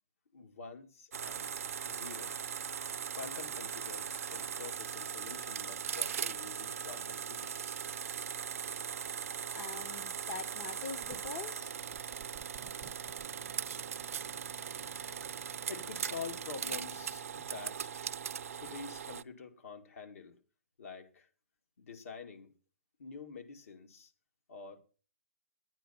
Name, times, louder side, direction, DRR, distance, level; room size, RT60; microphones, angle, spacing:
voice 1, 0.3-1.5 1.8-2.6 3.1-7.8 15.7-18.1 18.6-20.4 20.8-21.3 21.8-22.5 23.0-24.1 24.5-24.8, left 5 dB, 70° left, 2.2 m, -47 dB
sound 1, 1.1-19.2, right 8 dB, 70° right, 0.6 m, -39 dB
voice 2, 9.0-11.7, left 5 dB, 30° left, 0.8 m, -44 dB
sound 2, 11.0-11.4 11.9-17.2, right 7 dB, 20° right, 0.6 m, -57 dB
11.5 x 9.1 x 5.6 m
hypercardioid pair, 150°, 8 cm